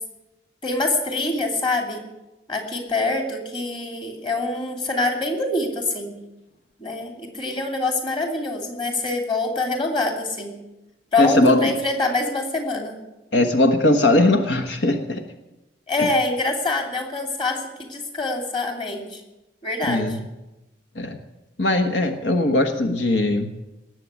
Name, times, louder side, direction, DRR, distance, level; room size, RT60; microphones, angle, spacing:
voice 1, 0.6-2.0 2.5-6.2 6.8-10.6 11.1-13.0 15.9-19.2 19.6-20.2, left 2 dB, 25° left, 3 dB, 2.6 m, -25 dB
voice 2, 11.2-11.7 13.3-15.2 19.9-20.2 20.9-21.2 21.6-23.5, left 1 dB, 80° left, 7 dB, 1.3 m, -19 dB
18.5 x 7.7 x 9.5 m, 1.0 s
head